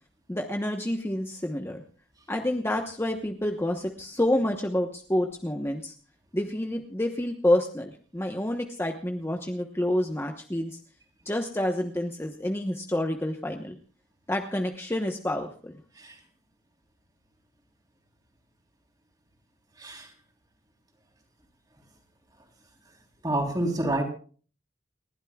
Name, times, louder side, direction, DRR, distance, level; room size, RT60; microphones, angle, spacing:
voice 1, 0.3-1.8 2.3-5.9 6.3-10.8 11.2-13.8 14.3-15.7, left 1 dB, 15° left, 3 dB, 1.0 m, -28 dB
voice 2, 23.2-24.0, right 1 dB, 20° right, 1 dB, 3.5 m, -27 dB
29.5 x 12.0 x 2.3 m, 0.41 s
head